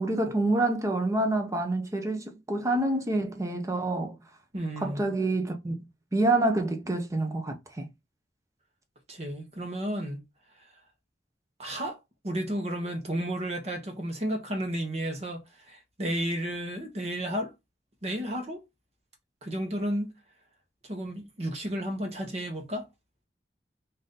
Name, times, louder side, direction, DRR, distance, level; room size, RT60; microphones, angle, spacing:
voice 1, 0.0-4.2 4.8-5.7 6.1-7.9, right 2 dB, 20° right, 0.7 m, -27 dB
voice 2, 4.5-5.1 9.1-10.3 11.6-12.0 12.2-17.5 18.0-18.6 19.4-20.1 20.9-22.8, right 1 dB, 40° right, 1.0 m, -32 dB
3.9 x 2.7 x 3.8 m
head